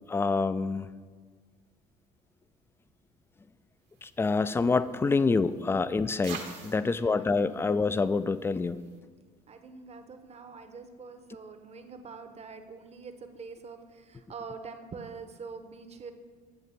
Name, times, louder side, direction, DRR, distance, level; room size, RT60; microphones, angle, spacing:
voice 1, 0.1-0.9 4.0-8.8, left 4 dB, 15° left, 14 dB, 0.3 m, -27 dB
sound 1, 3.9-9.0, right 5 dB, 75° right, 1.4 m, -49 dB
voice 2, 6.8-7.7 9.5-16.1, right 5 dB, 35° right, 8 dB, 0.9 m, -45 dB
8.9 x 7.5 x 4.0 m, 1.5 s
supercardioid pair, 70°, 18 cm